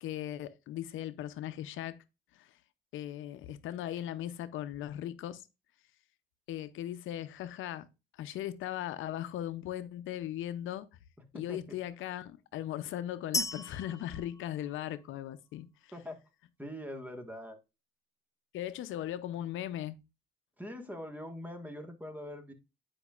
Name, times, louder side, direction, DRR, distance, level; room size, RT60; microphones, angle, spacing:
voice 1, 0.0-2.0 2.3-2.6 2.9-5.5 6.5-7.9 8.1-10.9 11.3-15.9 18.5-19.9, left 12 dB, 80° left, 0.6 m, -38 dB
sound 1, 13.3-15.3, left 2 dB, 15° left, 0.5 m, -37 dB
voice 2, 16.6-17.6 20.6-22.5, left 1 dB, 10° right, 1.4 m, -43 dB
9.8 x 5.2 x 2.4 m
cardioid pair, 90°, 20 cm